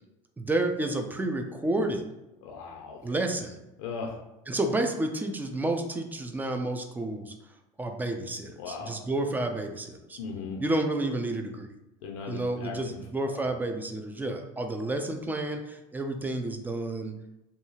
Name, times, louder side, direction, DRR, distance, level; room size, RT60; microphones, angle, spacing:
voice 1, 0.4-2.0 3.0-3.6 4.5-7.3 7.8-10.2 10.6-11.7 12.3-17.1, right 2 dB, 10° right, 5 dB, 0.3 m, -30 dB
voice 2, 2.4-3.1 3.8-4.2 8.6-9.0 10.2-10.6 12.0-13.0 13.2-13.5, left 5 dB, 90° left, 1 dB, 0.4 m, -38 dB
2.7 x 2.3 x 2.7 m, 0.93 s
supercardioid pair, 100°, 16 cm